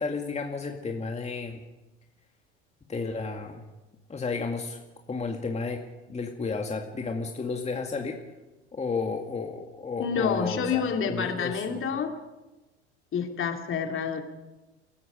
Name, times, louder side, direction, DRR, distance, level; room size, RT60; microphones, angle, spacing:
voice 1, 0.0-1.6 2.9-3.6 4.1-4.8 5.1-5.8 6.1-8.2 8.7-11.8, left 4 dB, 20° left, 2 dB, 2.2 m, -32 dB
voice 2, 10.0-12.1 13.1-14.2, left 6 dB, 35° left, 4 dB, 2.8 m, -28 dB
29.5 x 16.5 x 5.2 m, 1.1 s
hypercardioid pair, 70°, 35 cm